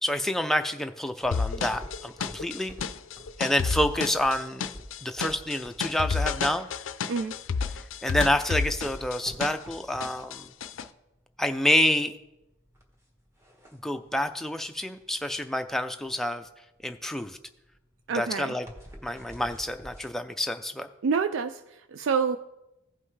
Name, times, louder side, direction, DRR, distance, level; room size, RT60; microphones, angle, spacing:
voice 1, 0.0-2.8 3.4-4.7 5.0-6.7 8.0-10.5 11.4-12.1 13.8-16.5 16.8-17.4 18.1-18.7 19.0-20.9, left 1 dB, ahead, 6 dB, 0.4 m, -28 dB
sound 1, 1.1-20.1, equal, 15° right, 1.2 m, -48 dB
sound 2, 1.3-9.7 10.0-10.8, left 5 dB, 75° left, 0.4 m, -31 dB
voice 2, 18.1-18.5 21.0-22.4, right 5 dB, 70° right, 9 dB, 0.4 m, -27 dB
16.0 x 5.5 x 3.2 m, 0.93 s
head